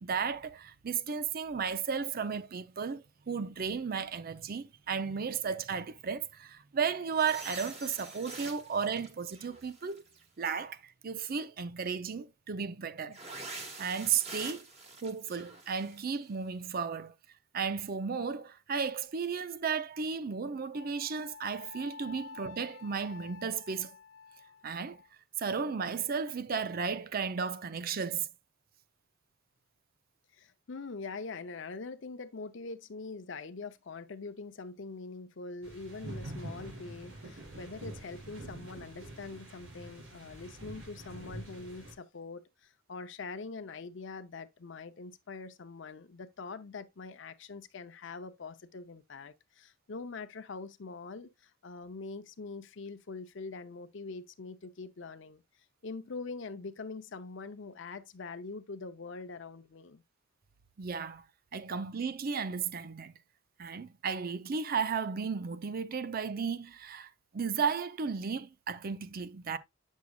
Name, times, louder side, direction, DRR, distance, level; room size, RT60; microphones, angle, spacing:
voice 1, 0.0-10.0 10.4-13.2 13.8-14.6 15.0-17.1 17.5-23.9 24.6-25.0 25.4-28.3 60.8-61.2 61.5-63.1 63.6-69.6, right 6 dB, 50° right, 0.5 m, -34 dB
sound 1, 7.1-10.2 13.1-16.2, right 2 dB, 30° right, 1.5 m, -46 dB
Wind instrument woodwind instrument, 20.7-25.1, left 5 dB, 85° left, 1.1 m, -50 dB
voice 2, 30.3-55.4 55.8-60.0, left 4 dB, 65° left, 0.6 m, -43 dB
sound 2, 35.6-41.9, right 1 dB, 85° right, 4.0 m, -45 dB
8.2 x 6.3 x 2.3 m
head